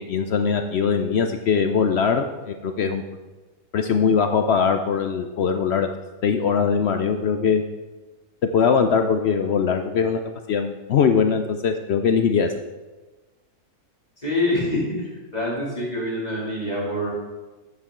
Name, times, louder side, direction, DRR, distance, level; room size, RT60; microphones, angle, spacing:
voice 1, 0.1-3.0 3.7-5.9 6.2-7.6 8.5-10.2 10.5-12.5, left 6 dB, 65° left, 7 dB, 0.6 m, -21 dB
voice 2, 14.2-17.1, left 1 dB, 25° left, -6 dB, 2.9 m, -25 dB
9.7 x 8.4 x 3.7 m, 1.2 s
omnidirectional pair, 1.6 m